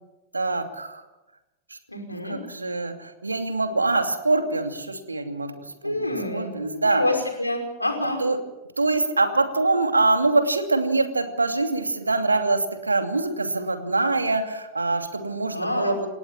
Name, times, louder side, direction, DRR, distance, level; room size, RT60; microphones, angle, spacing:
voice 1, 0.3-1.1 1.7-1.8 2.1-7.0 8.2-8.4 8.8-16.1, right 3 dB, 80° right, 7 dB, 2.7 m, -24 dB
voice 2, 1.9-2.4 5.8-6.5 6.9-8.2 15.5-15.9, left 1 dB, 85° left, 3 dB, 5.4 m, -27 dB
29.0 x 17.0 x 7.5 m, 0.98 s
figure-of-eight pair, 90°, 0 cm